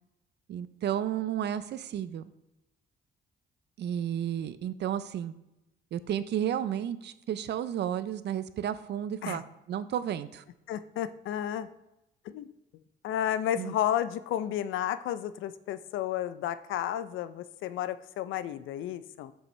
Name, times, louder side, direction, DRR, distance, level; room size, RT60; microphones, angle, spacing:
voice 1, 0.5-2.2 3.8-5.3 5.9-9.4 9.7-10.4 13.6-13.7, right 10 dB, 60° right, 14 dB, 0.5 m, -32 dB
voice 2, 10.7-11.7 12.3-12.5 13.0-19.3, left 11 dB, 80° left, 13 dB, 0.5 m, -32 dB
7.1 x 5.5 x 3.2 m, 0.90 s
cardioid pair, 90°, 20 cm